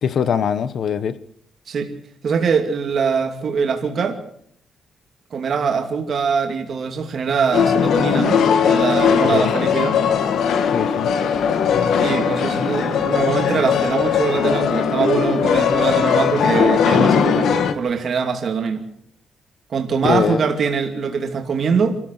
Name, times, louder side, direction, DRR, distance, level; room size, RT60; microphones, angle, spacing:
voice 1, 0.0-1.2 9.3-9.5 10.7-11.1 20.0-20.4, left 7 dB, 55° left, 1.2 m, -21 dB
voice 2, 2.2-4.2 5.3-10.0 12.0-17.5 17.8-18.9 19.7-22.0, right 5 dB, 45° right, 2.6 m, -22 dB
sound 1, 7.5-17.7, left 7 dB, 75° left, 1.8 m, -19 dB
27.5 x 14.0 x 6.7 m
wide cardioid pair, 170°, 0 cm